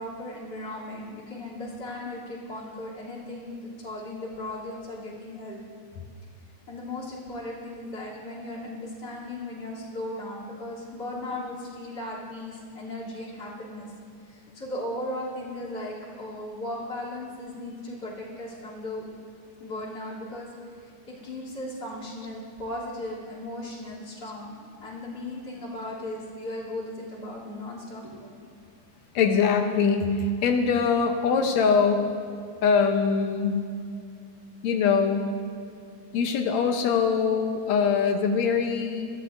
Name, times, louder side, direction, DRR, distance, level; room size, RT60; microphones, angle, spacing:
voice 1, 0.0-5.6 6.7-13.9 14.2-19.0 19.6-20.5 20.8-28.6, left 1 dB, 35° left, -5 dB, 3.4 m, -37 dB
voice 2, 29.2-32.1 32.6-33.6 34.6-35.3 36.1-39.1, left 5 dB, 70° left, 4 dB, 2.0 m, -23 dB
23.0 x 14.5 x 2.6 m, 2.3 s
omnidirectional pair, 3.5 m